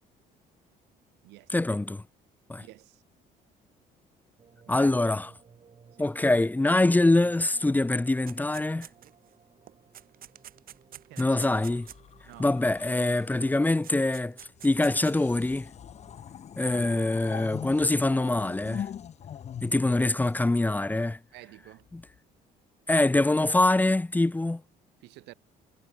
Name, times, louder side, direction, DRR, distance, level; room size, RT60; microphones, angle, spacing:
voice 1, 1.5-2.0 2.5-2.6 4.7-5.3 6.0-8.9 11.2-11.9 12.4-14.3 14.6-15.7 16.6-18.9 19.6-21.2 21.9-22.0 22.9-24.6, left 2 dB, 10° left, 0.8 m, -24 dB
voice 2, 2.6-2.9 4.7-5.0 6.0-6.1 11.1-11.4 12.2-12.5 21.3-21.9 25.0-25.3, right 20 dB, 85° right, 0.8 m, -49 dB
sound 1, 4.4-20.5 20.9-21.0, right 6 dB, 35° right, 7.0 m, -59 dB
sound 2, 8.3-9.3 9.7-12.4 13.5-13.6 13.8-15.2, right 11 dB, 60° right, 4.1 m, -47 dB
sound 3, 11.4-13.5 14.5-21.0 21.9-22.2, left 9 dB, 40° left, 0.7 m, -43 dB
cardioid pair, 110°, 17 cm